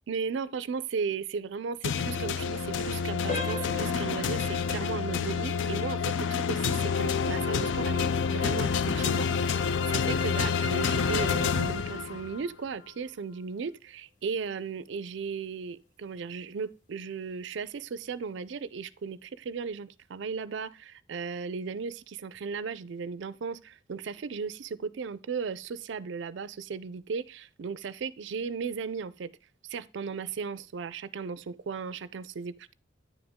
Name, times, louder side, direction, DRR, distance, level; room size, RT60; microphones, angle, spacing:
voice 1, 0.1-29.3 29.6-32.7, right 5 dB, 70° right, 0.4 m, -36 dB
sound 1, 1.8-12.4, left 6 dB, 75° left, 0.4 m, -28 dB
sound 2, 3.3-13.9 14.3-14.5 15.1-15.2 15.7-15.9, left 2 dB, 40° left, 1.2 m, -44 dB
9.8 x 5.0 x 3.6 m
head